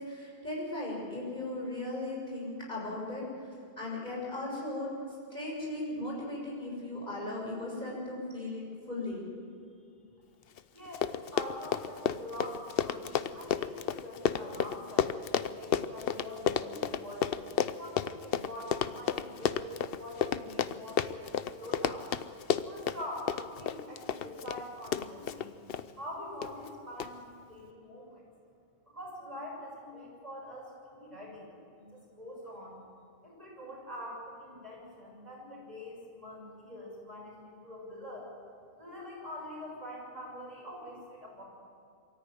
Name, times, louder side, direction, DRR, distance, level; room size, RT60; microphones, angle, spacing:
voice 1, 0.0-9.2, left 2 dB, 50° left, -4 dB, 6.9 m, -37 dB
Run, 10.6-10.7 10.9-25.8 26.4-26.7 27.0-27.1, left 8 dB, 70° left, 0.9 m, -31 dB
voice 2, 10.7-17.2 17.8-22.1 22.6-25.5 26.0-28.2 28.9-31.5 31.7-32.8 33.2-38.3 38.8-41.4, left 1 dB, 40° right, -4 dB, 7.4 m, -44 dB
24.0 x 14.0 x 9.4 m, 2.3 s
omnidirectional pair, 1.0 m